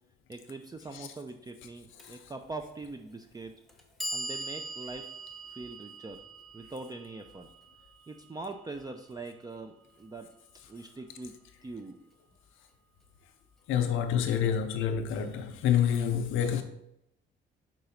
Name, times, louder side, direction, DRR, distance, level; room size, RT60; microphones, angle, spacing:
voice 1, 0.3-3.5 4.1-5.1 5.5-6.2 6.5-7.5 8.1-10.3 10.7-12.0, right 3 dB, 20° right, 0.5 m, -42 dB
Clock, 2.0-2.1 3.1-3.2 3.7-9.7, right 1 dB, ahead, 1.0 m, -42 dB
voice 2, 13.7-16.6, left 9 dB, 85° left, 0.6 m, -28 dB
4.6 x 3.9 x 5.6 m
cardioid pair, 90°, 20 cm